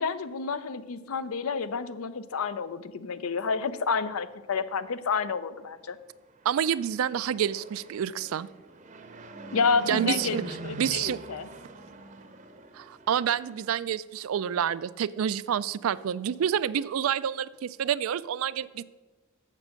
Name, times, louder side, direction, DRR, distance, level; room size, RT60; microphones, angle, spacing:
voice 1, 0.0-6.0 9.5-11.5, left 5 dB, 85° left, 13 dB, 0.6 m, -29 dB
Fixed-wing aircraft airplane, 6.3-13.7, right 2 dB, 35° right, 0.7 m, -43 dB
voice 2, 6.5-8.5 9.9-11.2 12.7-18.8, right 9 dB, 80° right, 18 dB, 0.3 m, -28 dB
7.6 x 7.2 x 6.4 m, 1.2 s
head